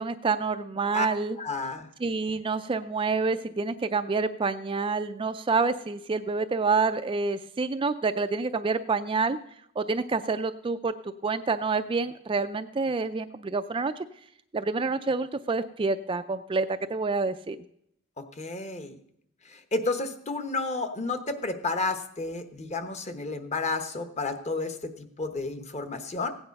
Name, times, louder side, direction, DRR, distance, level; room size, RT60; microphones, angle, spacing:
voice 1, 0.0-1.4 2.0-9.4 9.8-10.9 11.2-14.1 14.5-17.6, right 4 dB, 25° right, 10 dB, 0.4 m, -28 dB
voice 2, 1.4-1.9 18.2-18.9 19.5-26.3, left 3 dB, 30° left, 9 dB, 1.0 m, -31 dB
16.0 x 9.0 x 5.3 m, 0.73 s
head